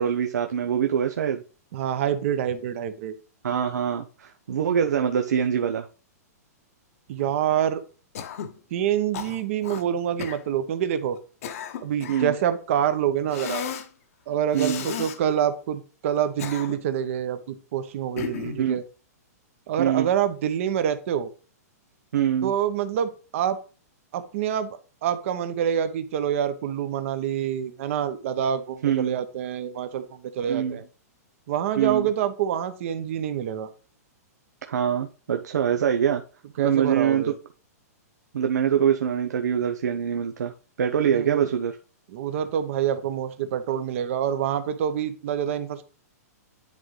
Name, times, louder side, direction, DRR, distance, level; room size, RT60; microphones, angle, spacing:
voice 1, 0.0-1.4 3.4-5.9 12.1-12.3 14.5-14.9 18.6-18.8 19.8-20.1 22.1-22.5 28.8-29.1 30.5-30.8 31.8-32.1 34.7-36.2 36.6-37.3 38.3-40.5 40.8-41.8, right 8 dB, 90° right, 5 dB, 0.7 m, -24 dB
voice 2, 1.7-3.1 7.1-7.8 8.7-11.2 11.8-13.6 14.3-18.8 19.7-21.3 22.4-23.6 24.1-30.8 31.5-33.7 36.6-37.3 41.1-41.5 42.1-45.8, right 9 dB, 55° right, 10 dB, 1.0 m, -26 dB
Cough, 8.1-8.6 9.1-9.8 10.2-10.4 11.1-12.3 13.3-13.9 14.5-15.2 16.1-17.0 18.2-18.6, left 8 dB, 60° left, 0.9 m, -34 dB
10.5 x 3.8 x 3.3 m, 0.37 s
hypercardioid pair, 145°, 9 cm